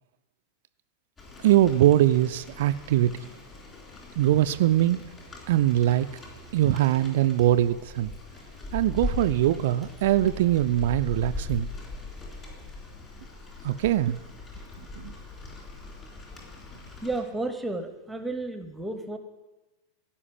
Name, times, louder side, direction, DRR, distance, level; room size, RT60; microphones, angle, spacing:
Rain, 1.2-17.2, left 3 dB, 25° left, 3.7 m, -40 dB
voice 1, 1.4-3.2 4.2-5.1 5.5-6.1 6.5-8.1 8.7-11.7 13.6-14.2 15.0-15.1, right 13 dB, 55° right, 10 dB, 0.4 m, -22 dB
voice 2, 17.0-19.2, right 2 dB, 5° right, 8 dB, 1.0 m, -32 dB
16.0 x 5.7 x 7.9 m, 1.1 s
figure-of-eight pair, 90°, 0 cm